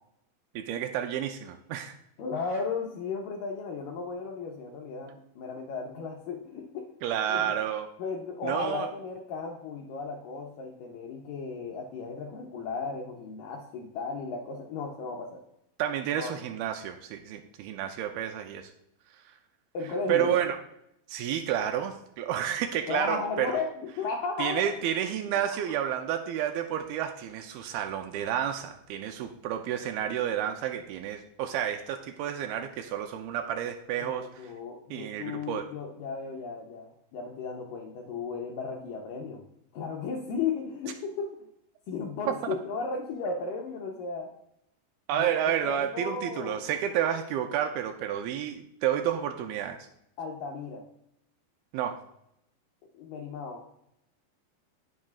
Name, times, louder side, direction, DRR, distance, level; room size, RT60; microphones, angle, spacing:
voice 1, 0.6-2.0 7.0-7.9 8.4-8.9 15.8-18.7 20.1-20.6 21.1-23.6 24.4-34.5 34.9-35.7 42.4-42.6 45.1-49.9 51.7-52.0, right 10 dB, 85° right, 6 dB, 2.2 m, -30 dB
voice 2, 2.2-6.9 7.3-7.5 8.0-15.4 16.1-16.3 19.7-20.3 22.9-24.7 34.0-39.5 39.7-41.3 41.9-44.3 45.1-45.3 45.6-46.6 50.2-50.8 52.9-53.6, left 4 dB, 80° left, 1 dB, 2.0 m, -35 dB
17.0 x 6.4 x 2.4 m, 0.78 s
omnidirectional pair, 4.9 m